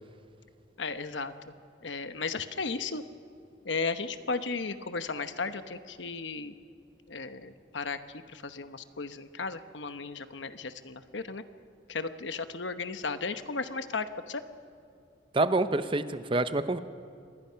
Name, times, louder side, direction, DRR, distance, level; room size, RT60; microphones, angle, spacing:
voice 1, 0.8-1.5 1.8-3.0 3.6-6.6 7.1-8.0 8.3-11.4 11.9-14.4, left 4 dB, 85° left, 10 dB, 1.0 m, -35 dB
voice 2, 15.3-16.8, right 2 dB, 30° right, 11 dB, 0.7 m, -27 dB
27.0 x 20.5 x 5.8 m, 2.4 s
head